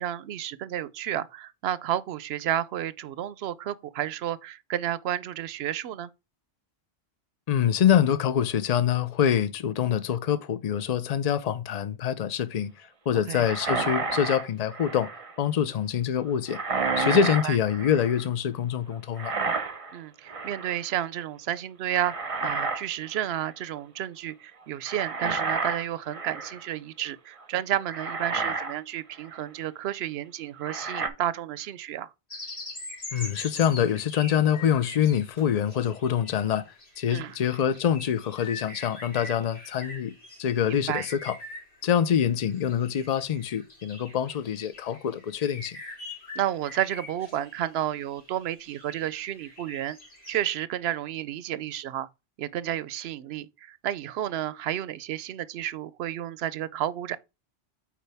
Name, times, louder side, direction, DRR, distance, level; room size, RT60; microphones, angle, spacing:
voice 1, 0.0-6.1 13.3-13.5 17.4-17.6 19.9-32.1 37.1-37.4 40.7-41.1 46.3-50.0 50.3-52.1 52.4-57.2, right 11 dB, 70° right, 0.8 m, -31 dB
voice 2, 7.5-15.1 15.4-16.6 17.0-19.3 33.1-36.6 37.0-40.1 40.4-41.3 41.8-45.8, left 9 dB, 45° left, 0.6 m, -25 dB
sound 1, 13.4-15.3 16.5-18.2 19.2-20.0 20.3-20.8 21.9-22.8 23.1-23.4 24.9-26.7 27.4-27.5 27.9-28.8 29.2-29.4 30.6-31.1, right 4 dB, 35° right, 0.7 m, -30 dB
sound 2, 32.3-47.7 48.1-50.4, left 2 dB, 70° left, 2.8 m, -43 dB
8.4 x 4.5 x 3.4 m
omnidirectional pair, 1.1 m